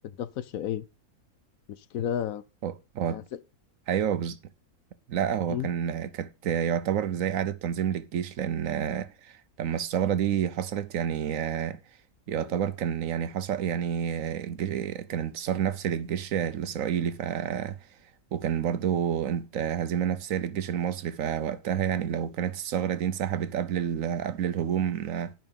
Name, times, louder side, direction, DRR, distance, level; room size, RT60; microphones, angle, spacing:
voice 1, 0.0-0.8 1.7-2.4 3.1-3.4 5.5-5.7, left 10 dB, 70° left, 1.1 m, -32 dB
voice 2, 2.6-3.2 3.9-4.4 5.1-11.8 12.3-17.9 18.3-25.3, right 9 dB, 65° right, 1.0 m, -29 dB
11.0 x 5.8 x 5.3 m
omnidirectional pair, 1.6 m